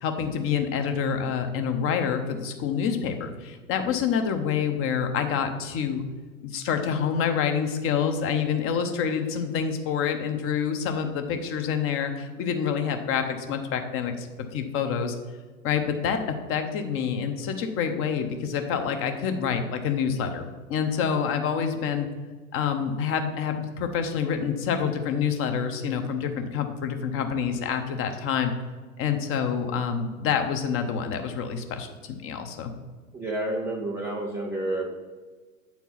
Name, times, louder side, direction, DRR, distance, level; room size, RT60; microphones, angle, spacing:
voice 1, 0.0-6.0 6.4-15.1 15.6-20.4 20.7-22.1 22.5-28.5 29.0-32.7, left 7 dB, 30° left, 6 dB, 0.9 m, -27 dB
voice 2, 33.1-34.9, right 1 dB, 5° right, -2 dB, 0.3 m, -29 dB
8.1 x 4.6 x 5.7 m, 1.4 s
hypercardioid pair, 110°, 42 cm